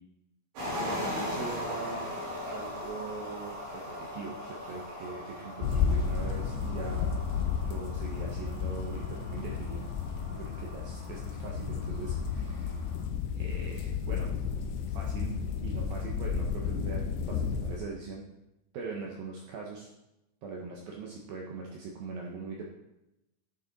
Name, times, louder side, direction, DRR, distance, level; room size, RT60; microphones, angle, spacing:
sound 1, 0.6-13.0, left 1 dB, 65° right, 5.7 m, -40 dB
voice 1, 0.8-2.1 2.4-7.1 7.6-9.9 10.3-12.9 13.4-17.0 17.3-18.2 18.7-19.9 20.4-22.7, right 4 dB, 80° right, -2 dB, 2.1 m, -41 dB
sound 2, 5.6-17.8, left 6 dB, 85° left, 2.5 m, -32 dB
11.0 x 6.7 x 4.1 m, 0.89 s
omnidirectional pair, 5.7 m